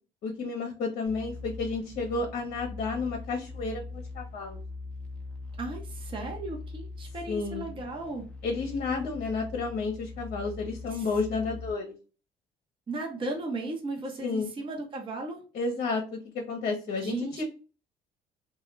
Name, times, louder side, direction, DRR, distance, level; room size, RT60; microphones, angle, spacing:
voice 1, 0.2-4.6 7.3-7.7 8.4-11.9 14.2-14.5 15.5-17.4, left 4 dB, 60° left, 2 dB, 0.7 m, -31 dB
sound 1, 1.1-11.7, left 3 dB, 5° left, 0.5 m, -41 dB
voice 2, 5.6-8.2 10.9-11.1 12.9-15.4 17.0-17.4, right 2 dB, 30° right, 1 dB, 0.7 m, -36 dB
2.2 x 2.1 x 3.0 m, 0.35 s
cardioid pair, 110°, 17 cm